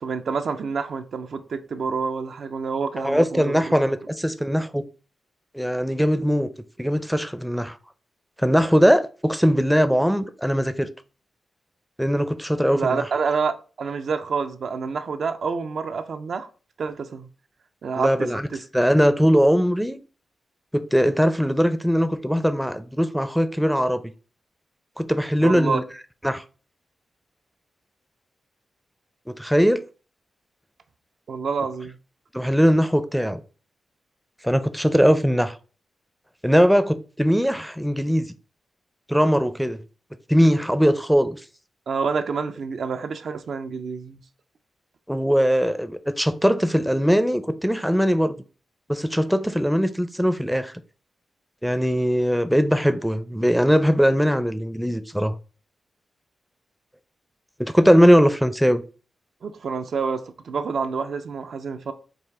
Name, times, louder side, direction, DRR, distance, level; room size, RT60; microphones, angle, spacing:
voice 1, 0.0-3.8 12.7-13.5 13.8-16.5 16.8-17.3 17.8-18.6 25.4-25.8 31.3-32.0 41.9-44.2 59.4-61.9, right 5 dB, 75° right, 0.5 m, -28 dB
voice 2, 3.0-4.8 5.5-6.5 6.8-7.7 8.4-10.9 12.0-13.0 18.0-18.4 18.7-20.0 20.7-24.1 25.0-25.8 26.2-26.4 29.3-29.8 32.3-33.4 34.4-35.5 36.4-38.3 39.1-39.8 40.3-41.4 45.1-48.4 48.9-50.7 51.6-55.3 57.6-58.8, equal, ahead, 0.5 m, -20 dB
4.8 x 2.4 x 3.5 m
cardioid pair, 65°, 0 cm